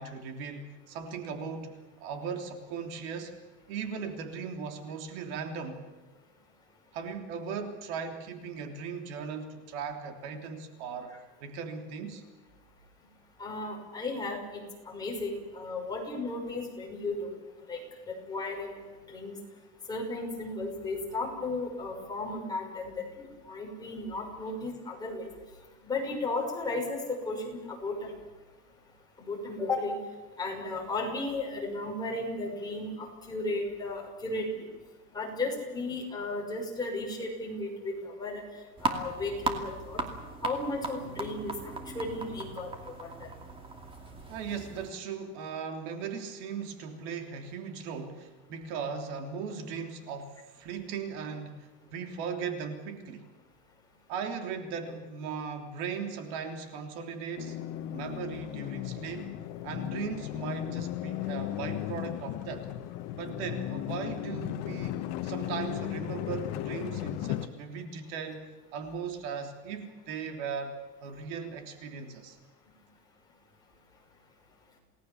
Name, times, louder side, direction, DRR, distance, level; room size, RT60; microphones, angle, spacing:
voice 1, 0.0-3.4 3.7-5.8 6.9-11.2 11.4-12.2 44.3-53.2 54.1-57.6 57.9-59.3 59.6-62.7 63.2-72.4, right 6 dB, 65° right, 5 dB, 3.3 m, -38 dB
voice 2, 13.4-17.4 17.7-17.8 18.1-18.7 19.1-19.3 19.9-25.3 25.8-28.1 29.2-29.9 30.4-34.7 35.1-38.4 38.8-40.0 40.4-43.3, left 2 dB, 10° left, -1 dB, 5.9 m, -35 dB
sound 1, 38.8-44.9, right 3 dB, 15° right, 2.5 m, -37 dB
sound 2, 57.4-67.5, left 13 dB, 50° left, 1.5 m, -36 dB
28.5 x 19.0 x 7.2 m, 1.3 s
cardioid pair, 170°, 35 cm